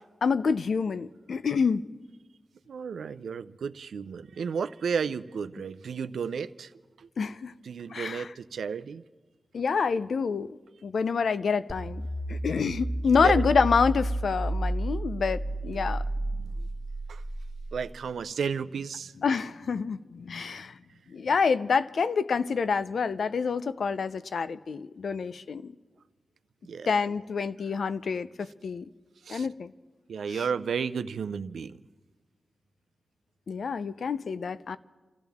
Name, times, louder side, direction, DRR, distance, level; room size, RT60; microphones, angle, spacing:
voice 1, 0.2-1.8 7.2-7.5 7.9-8.3 9.5-10.6 10.8-16.0 19.2-20.8 21.1-25.7 26.9-28.9 29.3-29.7 30.3-30.4 33.5-34.8, left 5 dB, 75° left, 0.5 m, -27 dB
voice 2, 2.7-6.7 7.0-7.1 7.6-9.0 13.0-13.4 15.7-15.8 16.4-16.5 17.1-17.2 17.7-19.1 26.6-27.0 29.2-29.5 30.1-31.7, right 6 dB, 90° right, 0.4 m, -33 dB
sound 1, 11.7-17.9, right 1 dB, 20° right, 1.1 m, -31 dB
29.5 x 14.0 x 3.5 m
cardioid pair, 60°, 0 cm